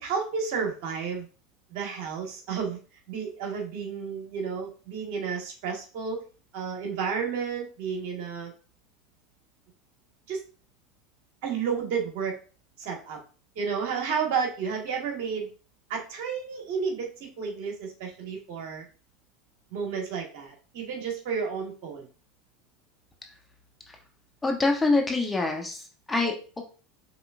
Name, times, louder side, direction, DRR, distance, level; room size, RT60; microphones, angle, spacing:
voice 1, 0.0-1.2 1.7-2.8 3.1-6.2 6.5-8.5 10.3-10.4 11.4-12.3 12.8-13.2 13.5-15.5 15.9-17.1 17.4-18.8 19.7-22.1, right 6 dB, 65° right, 1 dB, 1.6 m, -31 dB
voice 2, 24.4-26.6, left 3 dB, 15° left, 2 dB, 1.1 m, -26 dB
5.9 x 3.5 x 2.5 m, 0.36 s
hypercardioid pair, 85°, 0 cm